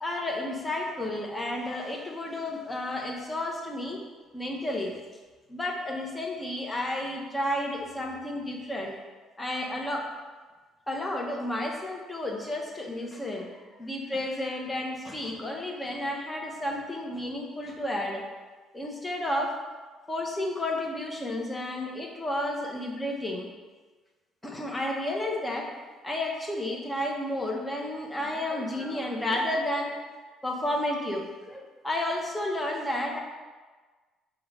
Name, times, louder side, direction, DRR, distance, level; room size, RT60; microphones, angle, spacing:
voice 1, 0.0-4.0 4.3-4.9 5.5-9.0 9.4-10.1 10.9-13.5 13.8-18.2 18.7-19.6 20.1-23.5 24.4-25.7 26.0-30.0 30.4-33.2, left 1 dB, 15° left, 0 dB, 0.9 m, -31 dB
6.0 x 2.5 x 3.1 m, 1.4 s
hypercardioid pair, 55°, 0 cm